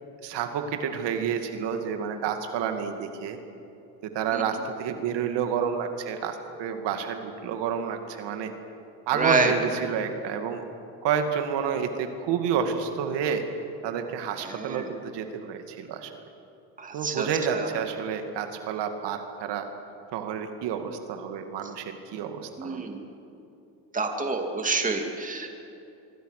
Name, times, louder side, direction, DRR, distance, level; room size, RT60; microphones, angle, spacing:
voice 1, 0.2-3.4 4.1-8.5 9.1-10.6 11.0-13.4 13.8-16.1 16.9-19.7 20.1-22.9, right 7 dB, 70° right, 6 dB, 2.3 m, -29 dB
voice 2, 9.1-9.5 14.5-14.9 16.8-17.3 17.5-17.7 22.6-23.0 23.9-25.5, right 3 dB, 20° right, 3 dB, 2.6 m, -27 dB
26.0 x 22.5 x 6.6 m, 2.8 s
cardioid pair, 135°, 44 cm